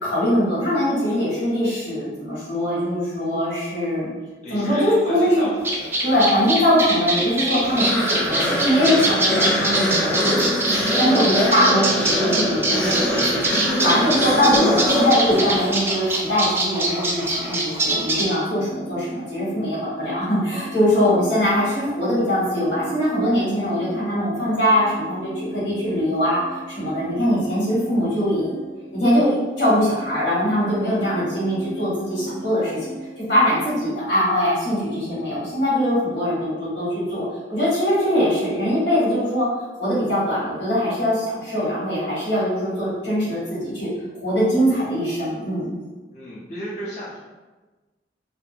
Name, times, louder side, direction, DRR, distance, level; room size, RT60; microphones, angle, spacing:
voice 1, 0.0-4.1 4.5-5.5 6.0-10.7 11.0-13.4 13.8-26.4 26.7-28.5 28.9-32.9 33.3-37.2 37.5-39.5 39.8-43.9 44.2-45.7, equal, 85° left, -9 dB, 1.4 m, -22 dB
voice 2, 4.4-6.2 46.1-47.2, equal, 40° left, -9 dB, 0.6 m, -34 dB
sound 1, 5.6-18.2, right 2 dB, 15° right, 0.3 m, -23 dB
sound 2, 7.6-16.1, equal, 5° left, 0.8 m, -23 dB
sound 3, 18.5-33.7, right 1 dB, 80° right, 0.5 m, -38 dB
2.7 x 2.3 x 2.5 m, 1.2 s
head